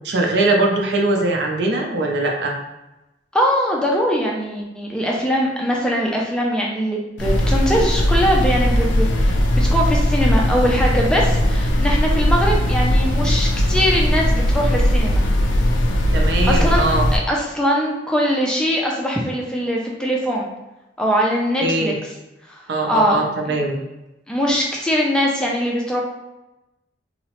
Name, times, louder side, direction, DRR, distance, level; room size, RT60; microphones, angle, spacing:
voice 1, 0.0-2.5 16.1-17.1 21.6-22.0 22.7-23.7, right 2 dB, 65° right, 1 dB, 0.5 m, -21 dB
voice 2, 3.3-15.2 16.5-16.9 17.1-20.5 21.0-21.9 22.5-23.2 23.5-23.6 24.3-26.0, equal, 5° left, -2 dB, 0.3 m, -21 dB
sound 1, 7.2-17.2, equal, 80° left, 0.4 m, -18 dB
2.8 x 2.0 x 2.9 m, 0.99 s
head